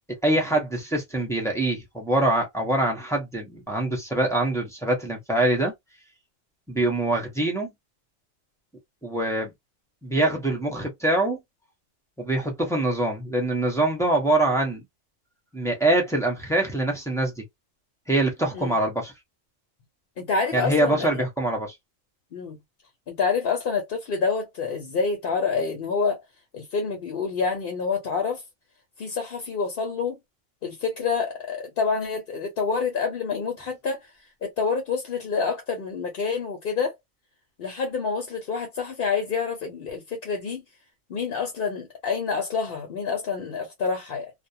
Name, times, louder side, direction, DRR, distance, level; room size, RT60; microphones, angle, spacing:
voice 1, 0.2-5.7 6.7-7.7 9.0-9.5 10.0-11.4 12.2-14.8 15.5-17.4 18.1-19.1 20.5-21.7, right 1 dB, 5° left, 0.5 m, -24 dB
voice 2, 20.2-21.1 22.3-22.6 23.1-26.2 26.5-28.4 29.0-30.2 30.6-34.0 34.4-36.9 37.6-40.6 41.1-44.3, left 5 dB, 55° left, 0.7 m, -27 dB
2.3 x 2.1 x 2.6 m
omnidirectional pair, 1.4 m